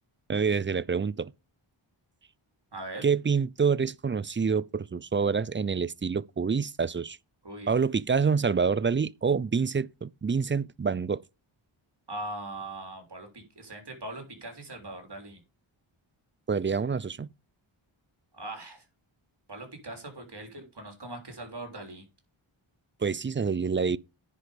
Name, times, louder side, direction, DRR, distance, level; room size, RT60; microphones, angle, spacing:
voice 1, 0.3-1.3 3.0-7.2 7.7-11.2 16.5-17.3 23.0-24.0, right 5 dB, 25° right, 0.4 m, -27 dB
voice 2, 2.7-3.1 7.4-7.7 12.1-15.4 18.3-18.8 19.5-22.0, right 2 dB, 55° right, 3.5 m, -40 dB
10.0 x 4.9 x 5.0 m
wide cardioid pair, 55°, 49 cm